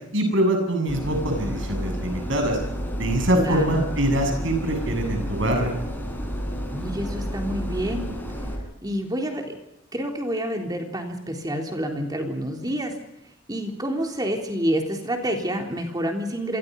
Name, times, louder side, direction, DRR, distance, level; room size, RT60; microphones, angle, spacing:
voice 1, 0.1-2.6 3.0-5.7, right 1 dB, 70° right, 4 dB, 7.7 m, -23 dB
sound 1, 0.9-8.6, equal, 10° left, 5.8 m, -31 dB
voice 2, 3.4-3.9 6.7-8.1 8.8-9.6 9.9-12.9 13.5-16.6, equal, 20° right, 3 dB, 3.6 m, -28 dB
29.0 x 24.0 x 5.4 m, 0.86 s
head